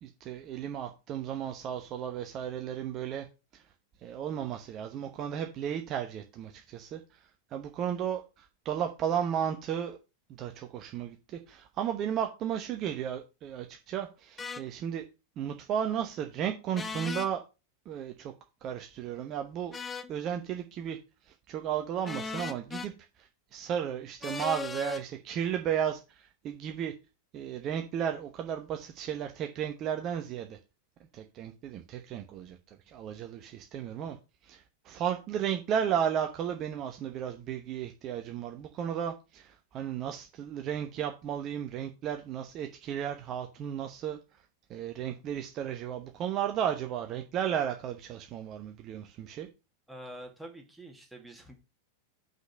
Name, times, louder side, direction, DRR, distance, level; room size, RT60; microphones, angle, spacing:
voice 1, 0.0-3.3 3.5-3.6 4.0-7.2 7.5-10.0 10.3-15.0 15.4-17.4 17.9-18.3 18.6-19.7 20.1-21.0 21.5-22.9 23.2-26.9 27.3-30.6 31.1-32.6 32.9-34.2 34.4-44.2 44.7-49.5, right 9 dB, 35° right, 1.0 m, -34 dB
sound 1, 14.4-14.6 16.7-17.3 19.7-20.1 22.0-22.9 24.2-25.0, left 4 dB, 15° left, 0.8 m, -37 dB
voice 2, 49.9-51.6, right 1 dB, 5° right, 2.1 m, -46 dB
6.2 x 5.3 x 6.3 m
figure-of-eight pair, 90°, 0 cm